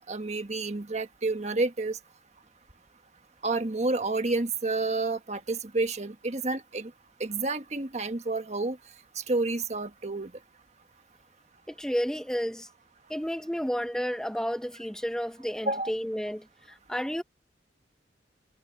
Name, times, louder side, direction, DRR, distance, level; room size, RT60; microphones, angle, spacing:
voice 1, 0.0-2.0 3.4-6.9 7.2-8.8 9.2-10.3 15.6-15.9, right 3 dB, 40° right, 1.4 m, -29 dB
voice 2, 11.7-12.7 13.1-17.2, equal, 5° left, 0.8 m, -31 dB
head